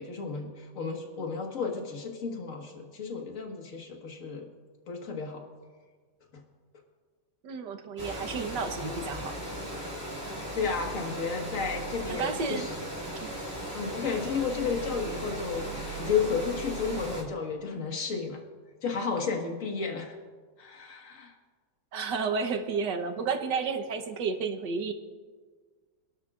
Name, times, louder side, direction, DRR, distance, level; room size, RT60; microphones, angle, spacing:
voice 1, 0.0-4.5 4.9-5.4 6.3-6.4 10.5-12.8 13.7-18.4 18.8-20.2 20.6-21.4, left 5 dB, 50° left, 1 dB, 2.0 m, -32 dB
voice 2, 7.4-9.3 12.1-12.7 13.2-13.3 21.9-24.9, right 5 dB, 90° right, 6 dB, 1.8 m, -31 dB
Water, 8.0-17.2, right 1 dB, 10° right, 4.0 m, -37 dB
27.0 x 12.0 x 2.5 m, 1.5 s
omnidirectional pair, 1.8 m